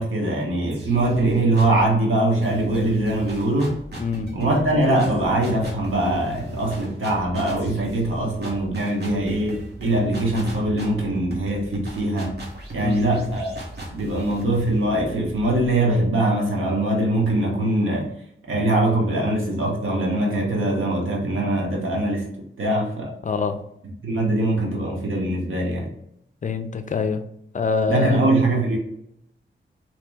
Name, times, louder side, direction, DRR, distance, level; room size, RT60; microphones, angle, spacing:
voice 1, 0.0-3.8 4.3-12.3 12.7-13.6 13.9-18.1 18.5-22.3 22.6-23.1 24.0-25.9 27.9-28.8, right 1 dB, 85° right, -1 dB, 0.9 m, -22 dB
sound 1, 0.7-1.9 2.4-16.1, right 1 dB, 55° right, 1.0 m, -37 dB
voice 2, 4.0-4.3 12.8-13.1 23.2-23.6 26.4-27.2 27.5-28.3, left 5 dB, 40° left, 9 dB, 0.4 m, -25 dB
3.0 x 2.9 x 3.4 m, 0.75 s
wide cardioid pair, 95°, 20 cm